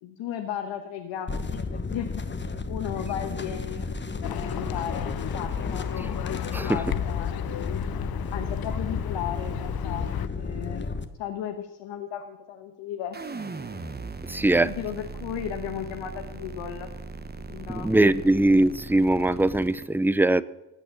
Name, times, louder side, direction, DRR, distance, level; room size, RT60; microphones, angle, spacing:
voice 1, 0.0-2.2 2.7-3.9 4.1-6.2 6.5-7.8 8.3-10.1 10.3-10.9 11.2-13.2 14.6-16.9 17.5-17.9 18.2-18.3, left 9 dB, 75° left, 5 dB, 1.2 m, -35 dB
sound 1, 1.3-11.0, left 4 dB, 25° left, 1.2 m, -33 dB
Livestock farm animals working animals, 4.2-10.3, left 12 dB, 50° left, 0.7 m, -33 dB
sound 2, 13.1-19.8, right 4 dB, 20° right, 1.2 m, -38 dB
voice 2, 14.3-14.7 17.7-20.4, right 1 dB, 5° right, 17 dB, 0.5 m, -21 dB
15.5 x 8.6 x 7.1 m, 1.0 s
supercardioid pair, 55°, 45 cm